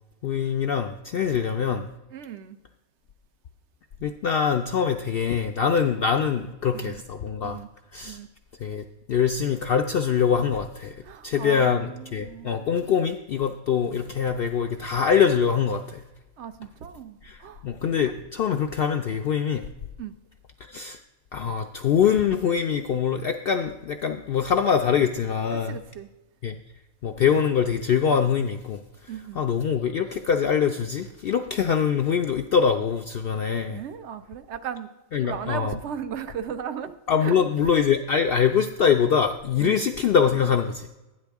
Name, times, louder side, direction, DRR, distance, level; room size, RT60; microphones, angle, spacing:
voice 1, 0.2-1.8 4.0-7.6 7.9-8.2 8.6-11.0 11.2-16.0 17.2-17.4 17.6-19.6 20.7-21.0 21.3-25.8 26.4-26.6 27.0-28.8 29.4-33.8 35.1-35.7 37.1-40.9, left 7 dB, 65° left, 5 dB, 0.6 m, -24 dB
voice 2, 2.1-2.6 6.4-6.5 6.7-7.0 7.4-7.7 8.0-8.3 11.0-12.5 16.4-17.7 20.0-20.1 25.5-26.1 29.1-29.4 33.7-34.9 35.2-37.4 39.6-39.9, right 8 dB, 60° right, 10 dB, 0.9 m, -36 dB
12.5 x 9.8 x 3.5 m, 1.0 s
omnidirectional pair, 1.4 m